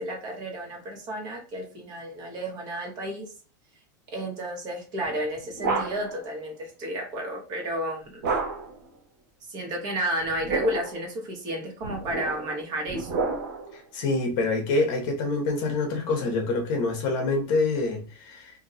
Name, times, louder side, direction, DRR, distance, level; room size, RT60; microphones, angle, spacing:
voice 1, 0.0-3.3 4.1-8.2 9.5-13.2, right 1 dB, 40° right, 0 dB, 1.1 m, -32 dB
sound 1, 5.0-6.2 8.2-8.8 10.2-11.0 11.8-13.8, right 4 dB, 65° right, 1.1 m, -30 dB
voice 2, 13.7-18.5, left 3 dB, 45° left, 3 dB, 0.9 m, -26 dB
2.7 x 2.2 x 3.9 m, 0.36 s
supercardioid pair, 165°, 10 cm